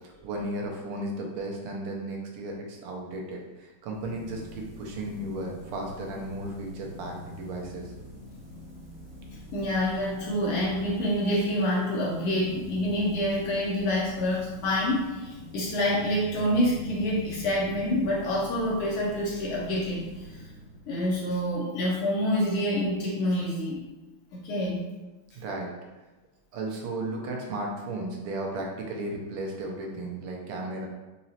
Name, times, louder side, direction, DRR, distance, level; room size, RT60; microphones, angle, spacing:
voice 1, 0.2-7.9 25.3-25.7 26.5-30.9, right 2 dB, 80° right, 0 dB, 1.7 m, -35 dB
sound 1, 3.9-21.4, left 1 dB, 30° right, 0.9 m, -44 dB
voice 2, 9.5-20.0 20.9-23.8 24.4-24.8, left 1 dB, 75° left, -5 dB, 1.6 m, -27 dB
5.2 x 2.9 x 2.8 m, 1.1 s
omnidirectional pair, 2.4 m